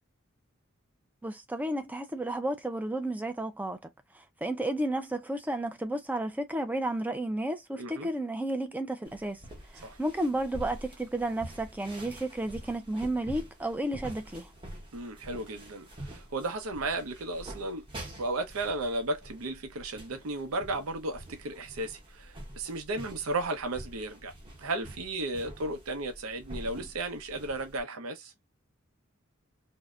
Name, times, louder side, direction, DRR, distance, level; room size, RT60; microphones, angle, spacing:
voice 1, 1.2-3.8 4.1-9.4 9.7-14.5, right 1 dB, 10° right, 0.4 m, -32 dB
voice 2, 7.8-8.1 9.8-10.0 14.9-17.9 18.2-24.3 24.6-28.3, right 2 dB, 75° right, 0.7 m, -34 dB
sound 1, 9.1-27.8, right 1 dB, 25° right, 0.8 m, -46 dB
2.6 x 2.1 x 2.3 m
head